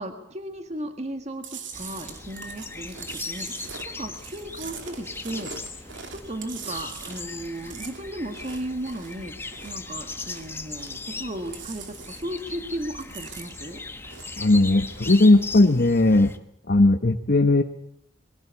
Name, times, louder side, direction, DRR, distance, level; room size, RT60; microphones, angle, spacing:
voice 1, 0.0-13.8, right 1 dB, 35° right, 6 dB, 1.9 m, -35 dB
Chewing mastication, 1.4-9.9 10.2-11.1 11.4-12.5 12.8-14.5 14.8-15.3, right 6 dB, 80° right, 2.8 m, -42 dB
sound 1, 1.7-16.4, left 3 dB, 15° left, 1.3 m, -38 dB
voice 2, 14.4-16.3 16.7-17.6, left 2 dB, 55° left, 6 dB, 1.1 m, -18 dB
22.0 x 17.0 x 8.3 m, 0.71 s
head